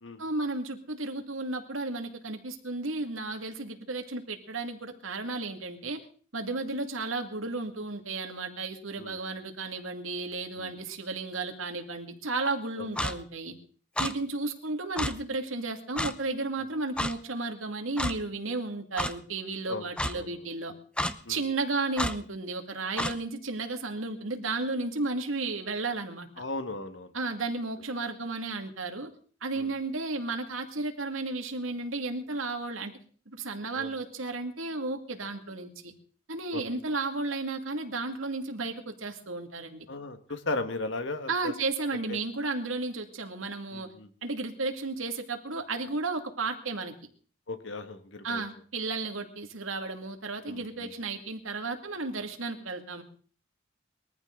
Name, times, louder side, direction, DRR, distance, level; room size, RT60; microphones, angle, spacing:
voice 1, 0.2-6.0 6.3-13.5 14.0-20.7 21.3-26.3 27.1-29.1 29.4-32.9 33.3-35.9 36.3-39.9 41.3-43.9 44.2-46.9 48.2-53.0, right 3 dB, 85° right, 6 dB, 2.3 m, -33 dB
voice 2, 9.0-9.3 10.6-10.7 12.8-12.9 14.0-14.1 19.7-19.9 20.1-20.4 21.2-21.4 26.4-27.1 29.6-29.7 33.7-33.9 36.5-36.6 39.9-41.5 42.1-42.2 43.7-44.1 47.5-48.4 50.4-50.9, left 2 dB, 65° left, 9 dB, 1.8 m, -36 dB
Clock, 13.0-13.1 14.0-14.1 15.0-15.1 16.0-16.1 17.0-17.1 18.0-18.1 19.0-19.1 20.0-20.1 21.0-21.1 22.0-22.1 23.0-23.1, left 1 dB, 5° left, 0.7 m, -29 dB
22.0 x 14.5 x 3.9 m, 0.43 s
head